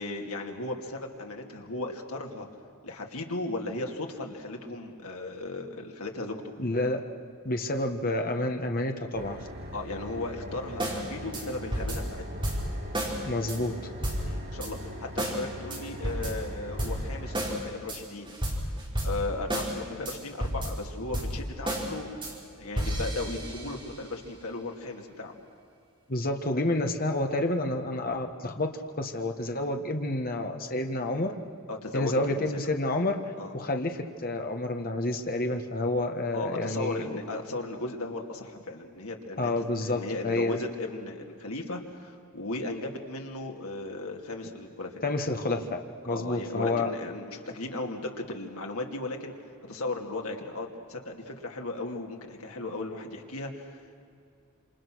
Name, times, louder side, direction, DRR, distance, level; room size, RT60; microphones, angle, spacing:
voice 1, 0.0-2.5 2.8-6.5 9.7-12.2 14.2-18.4 19.0-22.3 22.6-25.4 31.7-32.5 33.4-33.5 36.3-39.5 39.8-45.0 46.1-49.3 49.7-54.0, left 2 dB, 75° left, 2 dB, 2.7 m, -36 dB
voice 2, 6.6-7.0 7.4-9.4 13.2-13.7 26.1-28.7 29.0-31.3 31.9-33.2 33.5-37.2 39.4-40.6 45.0-45.8 46.0-46.9, left 2 dB, 40° left, 4 dB, 1.6 m, -29 dB
sound 1, 9.1-17.5, equal, 45° right, 3.4 m, -41 dB
sound 2, 10.8-11.0 11.3-11.5 11.7-13.2 13.5-13.6 14.0-14.7 15.2-15.4 15.7-17.6 17.9-19.7 20.1-21.9 22.2-22.3 22.6-23.9, right 1 dB, 20° right, 4.5 m, -32 dB
27.5 x 27.0 x 6.4 m, 2.5 s
head